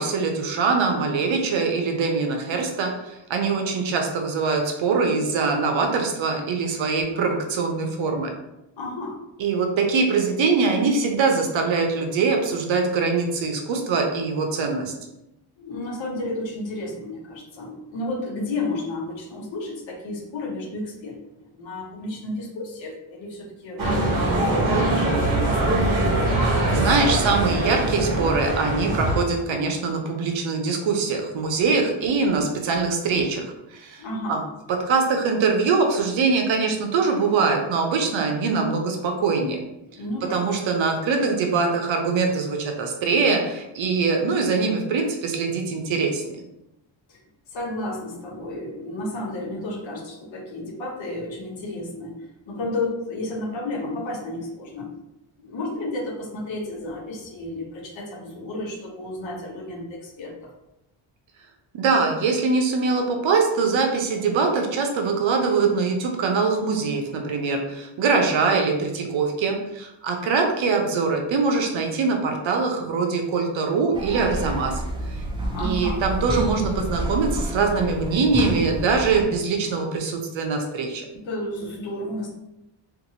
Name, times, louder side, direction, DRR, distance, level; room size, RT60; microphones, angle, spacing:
voice 1, 0.0-8.3 9.4-14.9 26.4-33.4 33.7-34.0 34.3-34.4 34.7-39.6 40.3-46.2 61.7-74.8 75.1-75.2 75.6-81.1, right 4 dB, 65° right, 3 dB, 0.7 m, -23 dB
voice 2, 8.8-9.2 15.6-25.8 34.0-34.4 40.0-40.4 47.1-47.2 47.5-54.9 55.4-60.5 75.5-76.1 81.1-82.3, left 2 dB, 65° left, -2 dB, 0.9 m, -32 dB
sound 1, 23.8-29.2, right 1 dB, 45° right, 1.0 m, -22 dB
sound 2, 73.9-79.2, right 1 dB, 10° right, 0.4 m, -29 dB
2.7 x 2.5 x 2.7 m, 0.89 s
cardioid pair, 80°, 49 cm